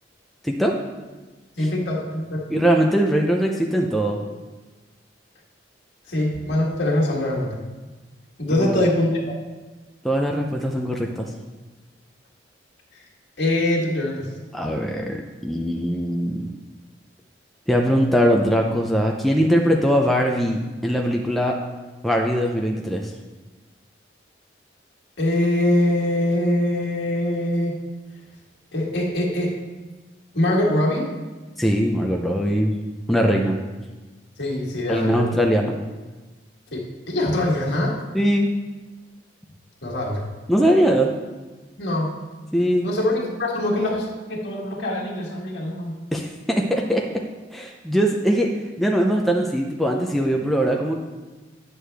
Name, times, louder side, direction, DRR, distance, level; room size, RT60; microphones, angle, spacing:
voice 1, 0.4-0.8 2.5-4.2 8.5-8.8 10.0-11.3 14.5-16.5 17.7-21.5 22.0-23.1 31.6-32.7 33.1-33.6 34.9-35.7 38.1-38.5 40.5-41.1 42.5-42.9 46.1-47.0 47.5-48.5 48.8-51.0, equal, ahead, 0 dB, 0.4 m, -21 dB
voice 2, 1.6-2.4 6.1-7.6 8.4-9.3 13.4-14.3 25.2-27.8 28.7-29.5 30.3-31.1 34.4-35.3 36.7-38.0 39.8-40.3 41.8-42.1 42.8-46.0, left 1 dB, 65° left, -4 dB, 1.8 m, -23 dB
9.3 x 6.4 x 3.4 m, 1.2 s
head